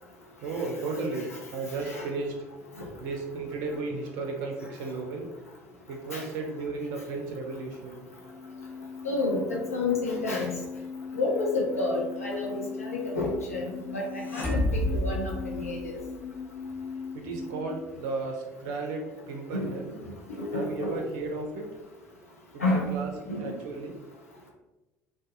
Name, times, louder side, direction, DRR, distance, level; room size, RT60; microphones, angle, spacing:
voice 1, 0.4-2.4 3.0-5.3 5.9-8.0 17.1-20.0 20.5-21.7 22.5-22.6 22.9-23.9, right 3 dB, 55° right, 2 dB, 0.4 m, -34 dB
sound 1, 8.1-17.7, left 5 dB, 55° left, 0.8 m, -39 dB
voice 2, 9.0-10.5 11.1-16.0 19.5-19.7 20.3-21.0 22.6-22.9 23.3-23.5, left 2 dB, 80° left, -1 dB, 0.5 m, -30 dB
sound 2, 14.2-16.2, left 1 dB, 30° left, 1.0 m, -29 dB
2.5 x 2.2 x 2.5 m, 1.1 s
figure-of-eight pair, 60°, 8 cm